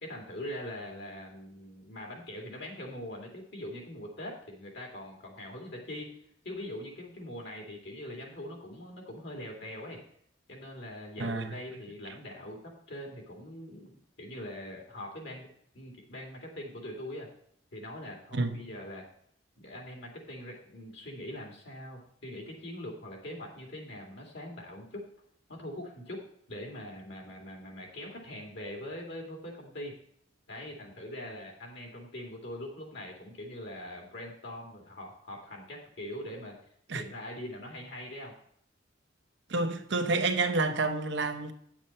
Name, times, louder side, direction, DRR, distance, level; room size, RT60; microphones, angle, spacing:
voice 1, 0.0-6.1 6.4-10.0 10.5-15.5 15.7-17.3 17.7-19.0 19.6-25.1 25.5-26.2 26.5-29.9 30.5-36.6 36.9-38.3, left 1 dB, 65° left, 2.5 m, -42 dB
voice 2, 11.2-11.5 18.3-18.6 36.9-37.0 39.5-41.5, right 3 dB, 65° right, 0.9 m, -29 dB
8.8 x 7.2 x 4.3 m
head